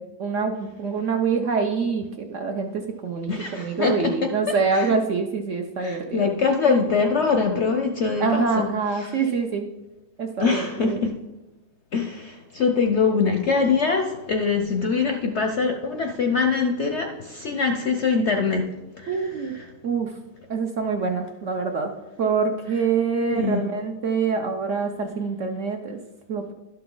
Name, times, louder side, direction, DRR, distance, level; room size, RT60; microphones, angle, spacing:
voice 1, 0.2-6.3 8.2-9.7 10.2-11.0 19.1-19.5 19.8-20.1 20.5-21.9 22.2-26.0 26.3-26.5, right 5 dB, 60° right, 4 dB, 0.8 m, -25 dB
voice 2, 3.3-5.0 5.8-8.7 9.0-9.2 10.4-11.1 11.9-18.6 19.0-19.6 23.3-23.6, left 5 dB, 60° left, 4 dB, 0.7 m, -23 dB
12.0 x 5.8 x 3.8 m, 1.0 s
omnidirectional pair, 1.8 m